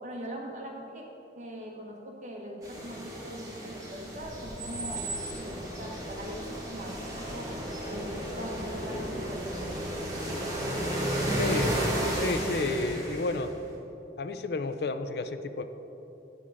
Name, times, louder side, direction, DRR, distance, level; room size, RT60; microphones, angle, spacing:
voice 1, 0.0-1.0 1.4-7.0 7.3-7.5 7.9-9.7 11.2-11.5, equal, 45° right, -1 dB, 1.2 m, -40 dB
sound 1, 2.6-13.5, right 1 dB, 20° right, 1.5 m, -33 dB
voice 2, 11.4-11.7 12.1-13.5 14.2-15.7, left 3 dB, 65° left, 10 dB, 0.4 m, -31 dB
9.0 x 5.6 x 4.8 m, 2.9 s
head